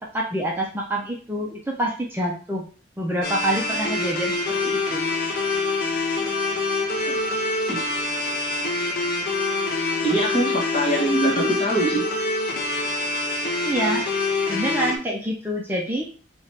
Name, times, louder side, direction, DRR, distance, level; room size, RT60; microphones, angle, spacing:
voice 1, 0.1-2.6 3.0-5.1 13.6-14.1 14.5-16.1, right 1 dB, 10° right, -2 dB, 0.5 m, -26 dB
sound 1, 3.2-15.0, left 2 dB, 50° left, 0.7 m, -25 dB
voice 2, 10.0-12.1, right 1 dB, 35° left, -2 dB, 1.1 m, -23 dB
3.2 x 2.5 x 4.2 m, 0.38 s
head